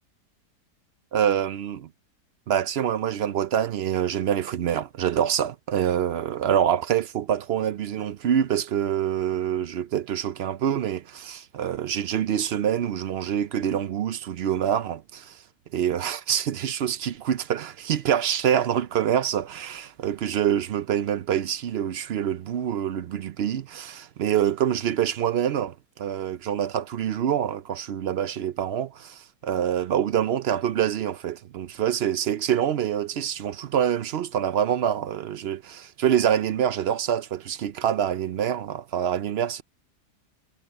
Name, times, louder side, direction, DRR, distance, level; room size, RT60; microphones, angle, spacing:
voice 1, 1.1-1.9 2.5-15.4 15.7-39.6, right 9 dB, 70° right, 0.6 m, -26 dB
omnidirectional pair, 1.7 m